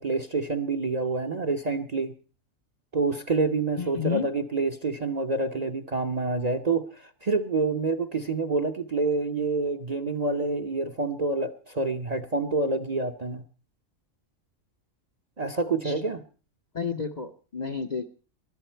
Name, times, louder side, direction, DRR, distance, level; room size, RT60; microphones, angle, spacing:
voice 1, 0.0-2.1 2.9-13.4 15.4-16.2, right 3 dB, 35° right, 9 dB, 0.8 m, -27 dB
voice 2, 3.8-4.3 15.8-15.9 16.7-18.1, left 5 dB, 35° left, 9 dB, 0.8 m, -31 dB
19.5 x 12.0 x 4.5 m, 0.37 s
omnidirectional pair, 1.4 m